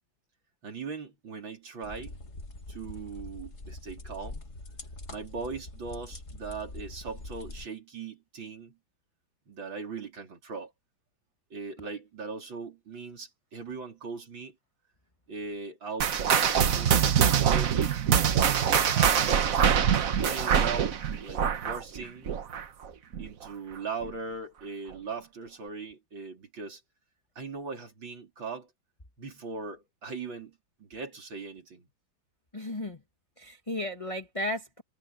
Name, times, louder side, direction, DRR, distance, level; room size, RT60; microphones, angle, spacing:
voice 1, 0.6-2.1 2.7-4.4 5.1-8.8 9.5-10.7 11.5-14.5 15.3-16.1 16.5-18.0 18.9-19.8 20.2-20.9 21.2-22.3 23.2-26.8 27.4-28.7 29.2-31.9, right 4 dB, 70° right, 4.5 m, -39 dB
sound 1, 1.8-7.7, left 2 dB, 35° left, 2.5 m, -43 dB
sound 2, 16.0-22.9 23.1-23.4 24.0-24.1 24.9-25.0, right 8 dB, 50° right, 1.3 m, -24 dB
voice 2, 32.5-33.0 33.4-34.8, left 1 dB, 15° left, 1.6 m, -34 dB
omnidirectional pair, 2.2 m